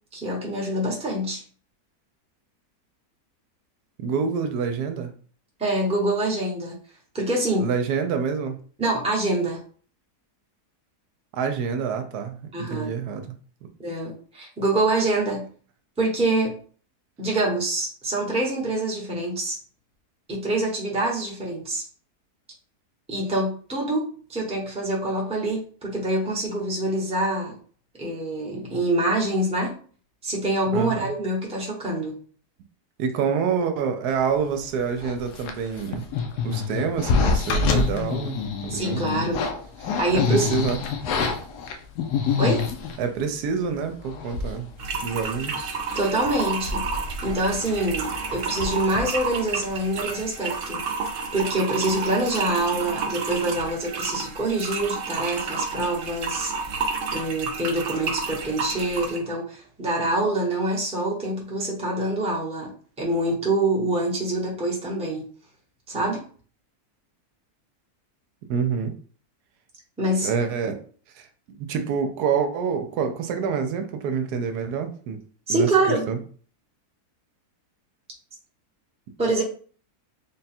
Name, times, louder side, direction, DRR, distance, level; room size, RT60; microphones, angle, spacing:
voice 1, 0.1-1.4 5.6-6.8 7.1-7.7 8.8-9.6 12.5-12.9 13.8-15.5 16.0-16.5 17.2-19.6 20.3-21.8 23.1-27.5 28.0-29.7 30.2-32.2 38.7-39.5 39.8-40.5 42.4-42.7 45.9-46.9 47.2-56.8 57.1-62.7 63.0-65.3 65.9-66.2 70.0-70.3 75.5-76.1 79.2-79.4, right 2 dB, 5° right, -3 dB, 0.6 m, -25 dB
voice 2, 4.0-5.1 7.6-8.6 11.3-13.3 30.7-31.1 33.0-36.0 36.4-39.3 39.8-40.8 43.0-44.7 45.0-45.7 68.5-68.9 70.2-70.8 71.2-75.2 75.5-75.7 76.1-76.2, right 6 dB, 80° right, 7 dB, 1.1 m, -27 dB
sound 1, 35.0-43.0 43.7-43.8 44.1-44.7 45.0-45.1 45.5-45.8 46.2-49.7 50.0-50.2, left 5 dB, 80° left, 1.2 m, -27 dB
sound 2, 44.8-59.2, right 4 dB, 65° right, 0.8 m, -31 dB
3.7 x 2.2 x 4.1 m, 0.43 s
omnidirectional pair, 1.7 m